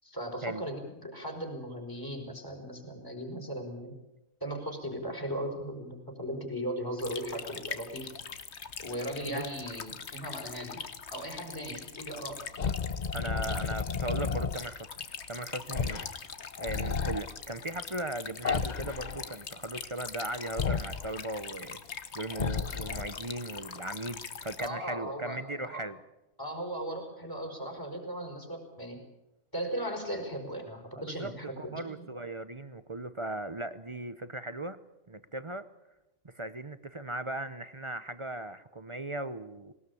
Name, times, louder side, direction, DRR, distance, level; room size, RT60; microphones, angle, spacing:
voice 1, 0.0-3.9 4.4-8.1 8.8-10.8 11.1-12.4 24.6-25.8 26.4-29.0 29.5-32.1, equal, 15° left, 3 dB, 5.0 m, -37 dB
sound 1, 7.0-24.7, left 6 dB, 55° left, 1.5 m, -43 dB
sound 2, 12.6-14.6 15.7-16.1 16.4-17.2 18.4-19.3 20.6-21.1 22.3-23.2, left 5 dB, 40° left, 0.9 m, -32 dB
voice 2, 13.1-14.9 15.3-16.1 16.6-26.0 31.0-34.8 35.1-35.7 36.2-39.7, right 1 dB, 30° right, 13 dB, 0.7 m, -38 dB
21.0 x 19.5 x 8.5 m, 0.95 s
omnidirectional pair, 1.4 m